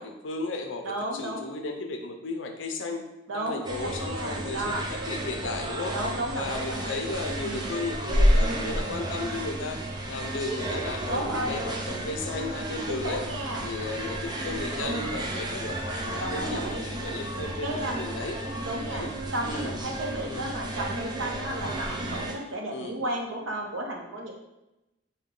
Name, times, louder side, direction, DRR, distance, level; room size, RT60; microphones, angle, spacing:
voice 1, 0.0-3.0 3.3-5.9 6.3-13.2 13.6-18.4 18.9-19.1 19.4-19.7 20.2-20.4 22.7-22.9, left 3 dB, 75° left, 4 dB, 0.5 m, -35 dB
voice 2, 0.8-1.5 3.3-4.8 5.9-7.0 7.4-7.7 8.4-8.7 11.1-11.6 12.9-13.6 14.8-15.2 16.2-16.9 17.6-18.1 18.7-19.1 19.3-24.3, right 1 dB, 85° right, 1 dB, 0.8 m, -33 dB
sound 1, 3.6-22.3, right 1 dB, 20° right, 0.4 m, -31 dB
4.7 x 2.2 x 3.7 m, 0.96 s
head